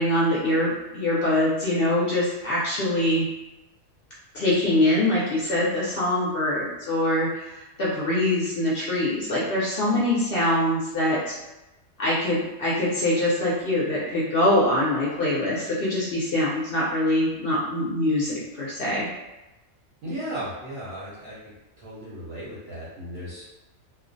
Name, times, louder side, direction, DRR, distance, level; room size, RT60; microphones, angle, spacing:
voice 1, 0.0-3.3 4.3-7.5 7.8-11.2 12.0-19.1, left 1 dB, 60° left, -7 dB, 0.6 m, -23 dB
voice 2, 20.0-21.4 21.8-23.5, equal, 60° right, -8 dB, 0.7 m, -35 dB
2.4 x 2.0 x 2.5 m, 0.99 s
omnidirectional pair, 1.4 m